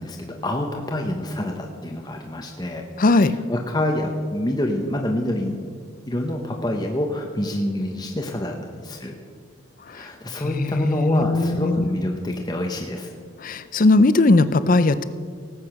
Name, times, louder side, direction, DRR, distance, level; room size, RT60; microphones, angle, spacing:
voice 1, 0.0-2.8 3.5-5.8 6.1-9.1 9.9-13.2, left 1 dB, 20° left, 1 dB, 0.9 m, -27 dB
voice 2, 3.0-3.4 9.9-10.1 10.4-11.9 13.4-15.0, left 2 dB, 40° left, 14 dB, 0.5 m, -19 dB
18.0 x 8.4 x 5.9 m, 2.2 s
head